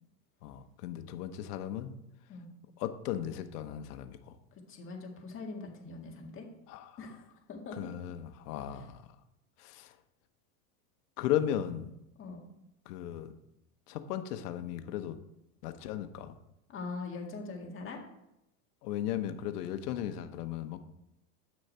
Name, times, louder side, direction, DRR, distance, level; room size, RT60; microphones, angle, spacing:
voice 1, 0.4-2.0 2.8-4.4 6.7-7.0 7.8-9.1 9.6-10.0 11.2-11.9 12.9-13.3 13.9-15.2 15.6-16.3 18.8-20.8, left 11 dB, 80° left, 9 dB, 1.1 m, -36 dB
voice 2, 4.7-6.5 7.0-7.9 12.2-12.5 16.7-18.0, left 3 dB, 25° left, 1 dB, 1.8 m, -42 dB
9.2 x 6.4 x 4.4 m, 0.85 s
supercardioid pair, 140°, 46 cm